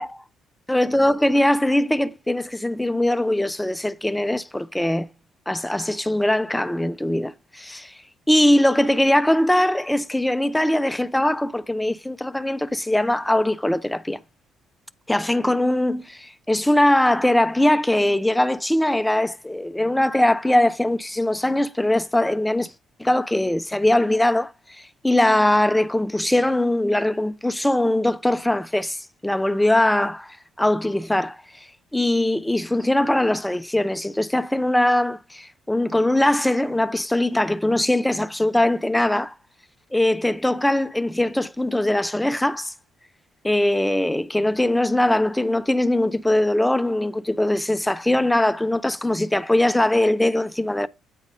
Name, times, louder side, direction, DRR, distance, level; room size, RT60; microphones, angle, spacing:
voice 1, 0.7-5.1 5.5-7.9 8.3-14.2 15.1-22.7 23.0-31.7 31.9-39.3 39.9-42.7 43.4-50.9, left 1 dB, 10° left, 0.6 m, -21 dB
9.2 x 4.0 x 4.9 m
supercardioid pair, 60°, 0 cm